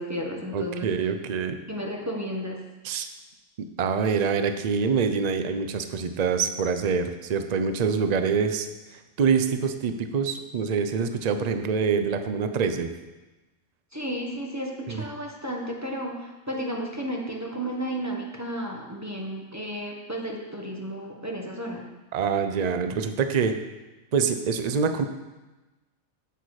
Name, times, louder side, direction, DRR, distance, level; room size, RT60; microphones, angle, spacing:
voice 1, 0.0-0.9 1.7-2.6 13.9-21.8, equal, 15° right, -1 dB, 1.1 m, -33 dB
voice 2, 0.5-1.6 2.8-3.1 3.8-12.9 14.9-15.0 22.1-23.6 24.1-25.0, right 6 dB, 45° right, 8 dB, 0.6 m, -25 dB
8.3 x 8.1 x 4.8 m, 1.1 s
omnidirectional pair, 1.3 m